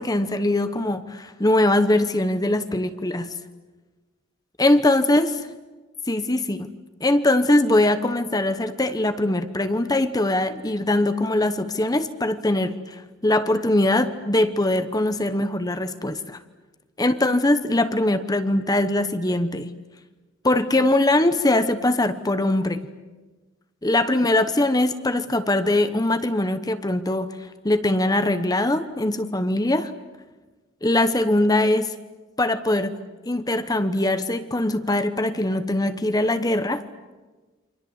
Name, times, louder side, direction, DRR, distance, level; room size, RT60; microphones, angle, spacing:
voice 1, 0.0-3.3 4.6-5.3 6.1-6.7 7.0-16.4 17.0-19.7 20.4-22.8 23.8-27.3 27.6-29.9 30.8-31.9 32.4-32.9 33.2-36.8, left 1 dB, 20° left, 10 dB, 1.0 m, -22 dB
29.0 x 25.5 x 8.1 m, 1.2 s
head